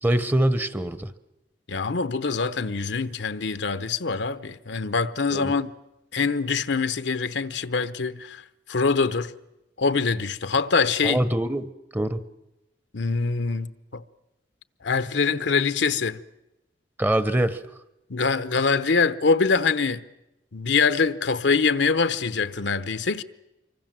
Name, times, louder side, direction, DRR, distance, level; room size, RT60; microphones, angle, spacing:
voice 1, 0.0-1.1 5.3-5.6 11.0-12.2 17.0-17.6, right 1 dB, 10° right, 0.9 m, -24 dB
voice 2, 1.7-5.7 6.1-9.3 9.8-11.2 12.9-14.0 14.8-16.2 18.1-20.0 20.5-23.2, left 4 dB, 70° left, 0.9 m, -24 dB
26.0 x 24.0 x 7.5 m
head